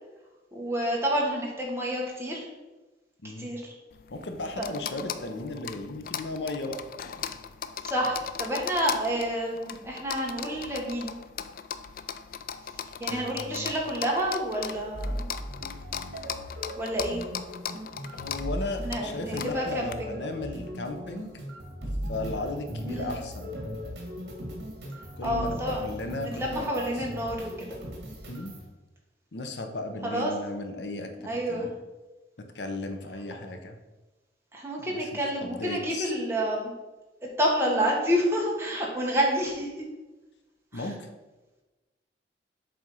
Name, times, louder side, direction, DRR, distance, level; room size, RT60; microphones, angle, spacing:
voice 1, 0.5-2.5 3.4-3.7 4.6-4.7 7.8-11.1 13.0-15.3 16.8-17.2 18.8-20.2 22.8-23.1 25.2-25.9 26.2-27.8 30.0-30.3 31.2-31.7 34.5-36.7 37.4-39.9 40.7-40.9, equal, 15° right, -2 dB, 1.3 m, -29 dB
voice 2, 3.2-3.5 4.1-6.8 13.1-13.7 18.1-21.3 22.1-23.6 25.2-27.0 28.3-28.6 29.3-31.7 32.4-33.8 34.8-35.1 35.4-36.1 40.7-41.1, left 2 dB, 75° left, 6 dB, 0.8 m, -36 dB
sound 1, 3.9-19.9, left 8 dB, 50° left, 0.3 m, -39 dB
sound 2, 14.9-28.7, equal, 65° right, 1.8 m, -38 dB
7.7 x 3.5 x 5.4 m, 1.1 s
head